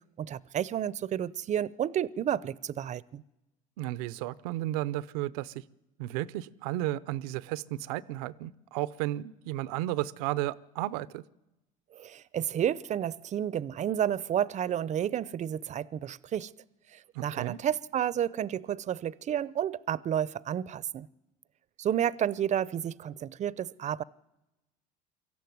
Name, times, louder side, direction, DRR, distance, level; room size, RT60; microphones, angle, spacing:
voice 1, 0.2-3.2 12.0-16.5 16.9-21.1 21.8-24.0, right 10 dB, 40° right, 0.7 m, -31 dB
voice 2, 3.8-5.5 6.0-11.2 17.1-17.6, right 15 dB, 80° right, 0.7 m, -33 dB
23.5 x 14.0 x 9.4 m
supercardioid pair, 85°, 18 cm